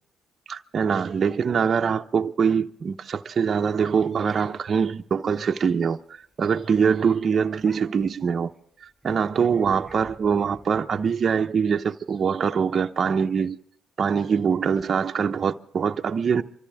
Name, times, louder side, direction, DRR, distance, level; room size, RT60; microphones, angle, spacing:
voice 1, 0.5-8.5 9.0-13.6 14.0-16.4, right 6 dB, 45° right, 0.8 m, -23 dB
sound 1, 3.7-5.0 5.3-5.4 5.7-6.0 6.3-6.5 6.9-7.0 7.5-8.2 9.0-11.1, right 1 dB, 5° right, 4.4 m, -48 dB
25.5 x 14.5 x 3.5 m
cardioid pair, 90°, 0 cm